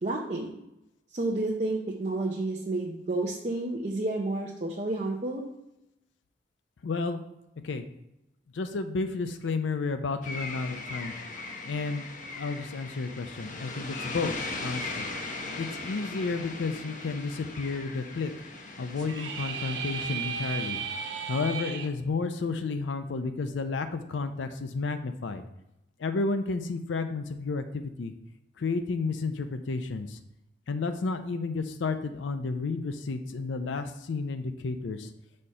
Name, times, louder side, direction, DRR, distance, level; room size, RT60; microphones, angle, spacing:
voice 1, 0.0-0.5 1.1-5.4, right 2 dB, 35° right, -1 dB, 0.6 m, -30 dB
voice 2, 6.8-7.2 7.6-7.8 8.5-11.1 11.6-12.1 12.4-14.3 14.6-15.1 15.6-18.3 18.8-20.8 21.3-25.4 26.0-28.1 28.6-30.2 30.7-35.1, left 4 dB, 85° left, 8 dB, 0.5 m, -31 dB
sound 1, 10.2-21.6, left 3 dB, 45° left, 0.8 m, -39 dB
sound 2, 19.0-21.9, right 6 dB, 75° right, 0.7 m, -35 dB
4.9 x 4.4 x 5.5 m, 0.87 s
head